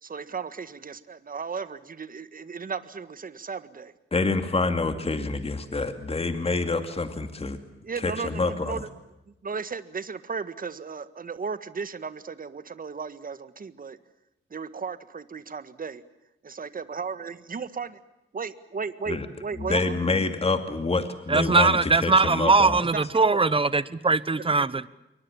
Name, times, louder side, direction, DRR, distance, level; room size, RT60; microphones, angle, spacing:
voice 1, 0.0-3.9 7.8-8.9 9.4-14.0 14.5-16.0 16.4-18.0 18.3-20.0 22.9-23.5 24.4-24.7, right 5 dB, 40° right, 1.7 m, -35 dB
voice 2, 4.1-7.6 8.0-8.8 19.1-19.3 19.6-22.9, left 3 dB, 30° left, 2.4 m, -27 dB
voice 3, 21.3-24.9, right 3 dB, 25° right, 1.1 m, -21 dB
28.0 x 23.5 x 7.2 m
wide cardioid pair, 115°, 21 cm